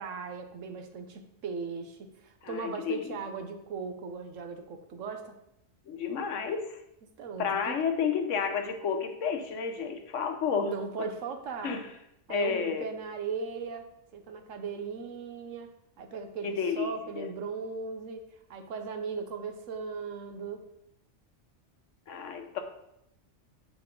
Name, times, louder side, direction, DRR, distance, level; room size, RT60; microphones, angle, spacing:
voice 1, 0.0-5.4 7.2-7.8 10.7-11.7 12.3-18.2 18.5-20.6, right 5 dB, 85° right, 6 dB, 1.2 m, -38 dB
voice 2, 2.4-3.2 5.9-6.8 7.4-10.7 11.0-11.1 11.6-11.9 12.3-12.8 16.4-17.3 22.1-22.6, left 6 dB, 80° left, 6 dB, 1.2 m, -31 dB
7.1 x 5.0 x 3.8 m, 0.82 s
omnidirectional pair, 1.3 m